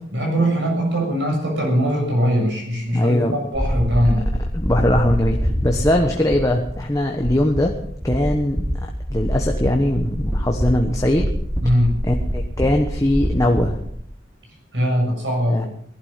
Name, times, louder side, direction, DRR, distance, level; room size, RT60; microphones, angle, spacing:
voice 1, 0.1-4.2 11.6-12.0 14.7-15.7, equal, 75° right, 1 dB, 7.1 m, -21 dB
voice 2, 2.9-3.4 4.5-7.7 8.0-11.3 12.0-13.8 15.5-15.7, left 1 dB, 15° left, 2 dB, 1.1 m, -20 dB
sound 1, 3.5-13.9, equal, 5° right, 2.9 m, -25 dB
18.0 x 12.0 x 5.7 m, 0.69 s
head